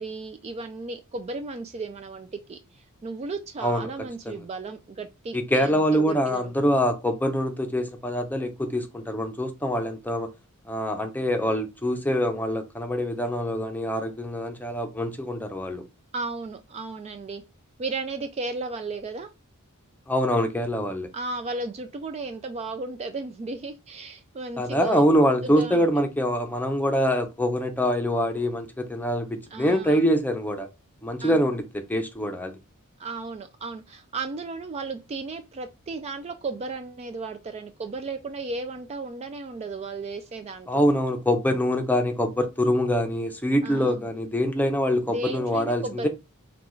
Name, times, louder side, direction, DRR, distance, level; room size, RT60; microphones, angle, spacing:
voice 1, 0.0-6.5 16.1-17.4 17.8-19.3 21.1-25.1 25.4-26.1 29.5-30.1 31.2-31.5 33.0-40.8 43.6-44.1 45.1-46.1, right 3 dB, 30° right, 0.3 m, -35 dB
voice 2, 5.3-10.3 10.7-15.8 20.1-21.1 24.6-30.7 31.0-32.5 40.7-46.1, equal, 10° left, 0.6 m, -24 dB
5.9 x 2.3 x 3.1 m
head